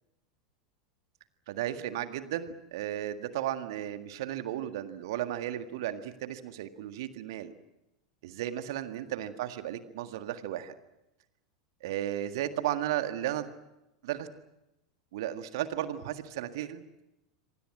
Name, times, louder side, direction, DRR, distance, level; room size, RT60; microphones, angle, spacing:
voice 1, 1.5-7.5 8.2-10.7 11.8-13.5 14.0-14.3 15.1-16.9, right 12 dB, 60° right, 9 dB, 1.8 m, -34 dB
27.5 x 24.5 x 6.1 m, 0.91 s
figure-of-eight pair, 85°, 3 cm